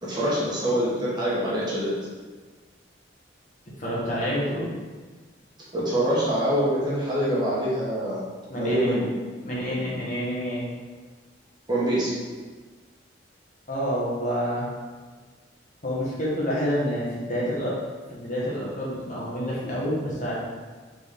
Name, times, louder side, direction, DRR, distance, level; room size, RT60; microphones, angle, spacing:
voice 1, 0.0-1.9 5.7-8.2 8.6-9.1 11.7-12.1, right 1 dB, 25° right, -8 dB, 1.0 m, -25 dB
voice 2, 3.8-4.7 8.5-8.9 9.4-10.7 13.7-14.7 15.8-17.8 18.1-20.4, equal, 40° left, -7 dB, 1.2 m, -28 dB
3.9 x 3.7 x 3.5 m, 1.4 s
head